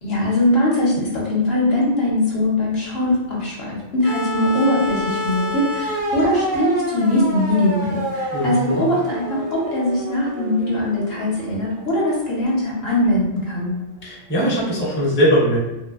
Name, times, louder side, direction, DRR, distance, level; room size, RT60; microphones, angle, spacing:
voice 1, 0.0-13.7, left 1 dB, 60° left, -4 dB, 0.9 m, -21 dB
sound 1, 4.0-12.2 13.4-13.5, equal, 45° right, 0.4 m, -28 dB
voice 2, 8.3-8.8 14.0-15.6, equal, 15° left, -6 dB, 0.4 m, -20 dB
2.4 x 2.4 x 2.3 m, 0.97 s
omnidirectional pair, 1.3 m